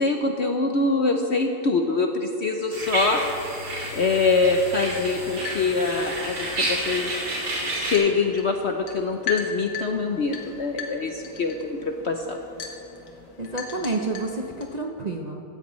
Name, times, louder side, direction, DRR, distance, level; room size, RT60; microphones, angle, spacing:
voice 1, 0.0-3.2 3.9-7.1 7.7-12.4, left 3 dB, 60° left, 4 dB, 0.7 m, -24 dB
sound 1, 2.7-8.0, right 1 dB, 80° right, 3.2 m, -30 dB
sound 2, 5.0-14.8, left 5 dB, 85° left, 2.0 m, -39 dB
voice 2, 13.4-15.4, right 2 dB, 40° right, 1 dB, 0.6 m, -29 dB
15.5 x 15.0 x 3.1 m, 2.9 s
omnidirectional pair, 1.8 m